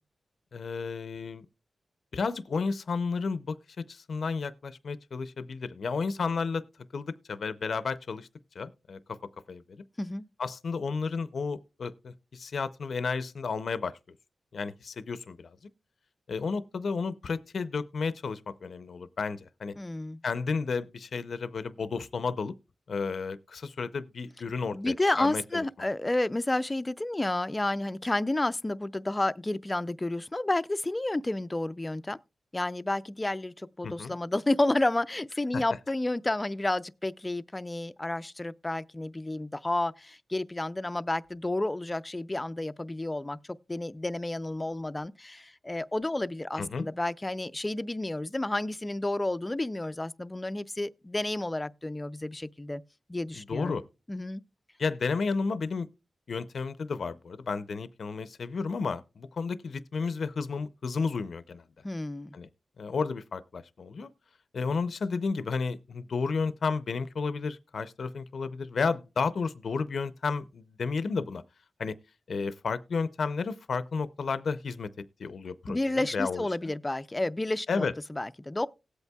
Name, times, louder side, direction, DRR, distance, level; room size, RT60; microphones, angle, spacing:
voice 1, 0.5-1.5 2.1-3.6 3.9-6.6 6.9-8.3 8.6-9.0 9.5-9.6 10.4-13.9 14.5-15.6 16.3-19.7 20.2-22.5 22.9-25.6 33.8-34.1 35.5-35.6 46.6-46.9 53.4-53.8 54.8-55.9 56.3-61.6 62.3-62.5 62.8-64.1 64.5-71.4 71.8-71.9 72.3-74.9 75.2-76.4 77.7-77.9, left 4 dB, 70° left, 0.5 m, -32 dB
voice 2, 19.8-20.2 24.7-32.2 32.5-43.4 43.7-52.8 53.1-53.8 54.1-54.4 61.8-62.4 75.7-78.7, left 2 dB, 20° left, 0.4 m, -31 dB
18.5 x 8.1 x 2.3 m
wide cardioid pair, 85°, 0 cm